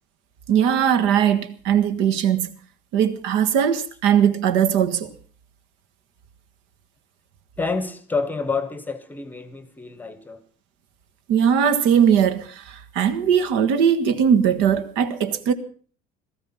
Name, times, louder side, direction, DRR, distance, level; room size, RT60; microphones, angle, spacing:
voice 1, 0.5-2.5 2.9-5.1 11.3-15.5, right 8 dB, 70° right, 1.6 m, -19 dB
voice 2, 7.6-10.4, left 4 dB, 10° left, 0.9 m, -28 dB
17.5 x 14.0 x 5.7 m
cardioid pair, 170°, 19 cm